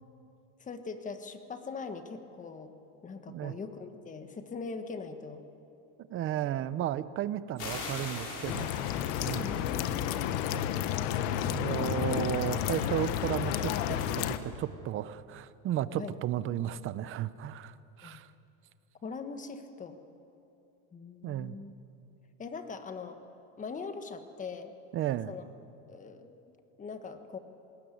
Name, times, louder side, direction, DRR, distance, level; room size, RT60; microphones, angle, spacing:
voice 1, 0.6-2.7 3.0-5.4 9.4-10.4 11.7-12.2 15.9-16.1 18.0-18.2 19.0-20.0 20.9-21.7 22.4-23.3 23.6-24.7 25.3-25.4 25.9-26.3 26.8-27.4, left 4 dB, 20° left, 8 dB, 1.4 m, -41 dB
voice 2, 6.1-8.7 9.2-9.5 10.5-10.6 11.4-18.3 21.2-21.6 24.9-25.3, right 12 dB, 30° right, 15 dB, 0.7 m, -34 dB
sound 1, 7.6-10.9, left 3 dB, 45° left, 5.5 m, -42 dB
sound 2, 8.4-14.4, left 10 dB, 65° left, 1.3 m, -31 dB
20.0 x 19.5 x 9.4 m, 2.8 s
supercardioid pair, 150°, 42 cm